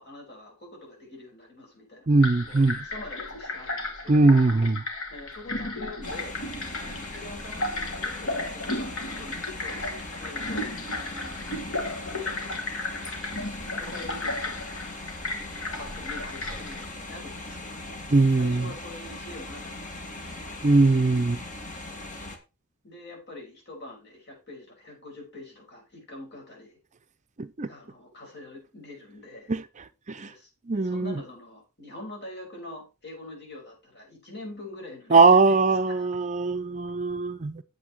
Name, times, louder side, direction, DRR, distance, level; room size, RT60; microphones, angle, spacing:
voice 1, 0.0-4.3 5.1-6.4 6.7-9.9 10.2-12.3 13.8-14.8 15.8-18.0 18.4-20.6 22.8-26.8 27.7-29.5 30.2-36.1, left 1 dB, 50° left, 6.0 m, -45 dB
voice 2, 2.1-2.8 4.1-4.8 18.1-18.7 20.6-21.4 27.4-27.7 29.5-29.6 30.1-30.3 30.7-31.2 35.1-37.6, right 3 dB, 35° right, 0.5 m, -21 dB
sound 1, 2.2-16.9, left 2 dB, 70° left, 2.3 m, -34 dB
sound 2, 6.0-22.4, left 2 dB, 35° left, 1.8 m, -40 dB
8.4 x 8.1 x 4.6 m
head